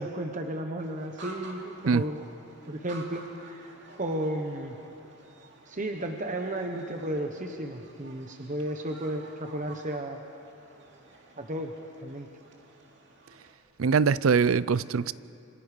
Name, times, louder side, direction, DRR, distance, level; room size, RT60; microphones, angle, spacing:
voice 1, 0.0-2.2 2.7-3.7 4.0-4.8 5.7-10.2 11.4-11.7 12.0-12.3, right 1 dB, 40° right, 1.1 m, -33 dB
sound 1, 0.8-13.5, right 2 dB, 60° right, 2.6 m, -51 dB
voice 2, 13.8-15.1, right 5 dB, 80° right, 0.5 m, -23 dB
27.5 x 25.5 x 5.2 m
head